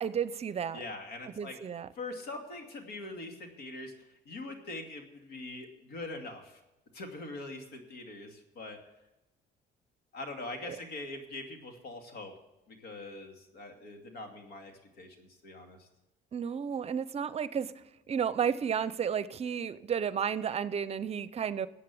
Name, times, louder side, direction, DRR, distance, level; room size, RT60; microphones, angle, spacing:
voice 1, 0.0-0.8 1.4-1.9 10.7-10.8 16.3-17.7 18.1-21.7, right 7 dB, 40° right, 16 dB, 0.6 m, -32 dB
voice 2, 0.7-1.6 1.9-3.9 4.3-6.6 6.9-8.8 10.1-12.3 12.7-14.7 15.0-15.9, left 2 dB, 80° left, 4 dB, 2.5 m, -43 dB
13.0 x 8.4 x 7.1 m, 0.99 s
cardioid pair, 110°, 17 cm